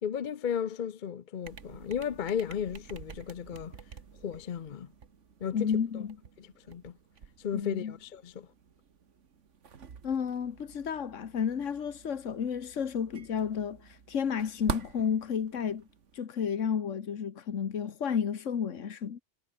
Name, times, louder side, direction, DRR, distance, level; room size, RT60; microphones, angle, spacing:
voice 1, 0.0-3.8 4.2-4.9 5.4-5.7 6.4-6.9 7.4-8.5, left 8 dB, 50° left, 0.7 m, -34 dB
sound 1, 1.4-16.2, right 6 dB, 75° right, 1.8 m, -46 dB
voice 2, 5.5-6.2 7.5-7.9 10.0-15.8 16.1-19.2, left 7 dB, 85° left, 1.6 m, -32 dB
omnidirectional pair, 1.3 m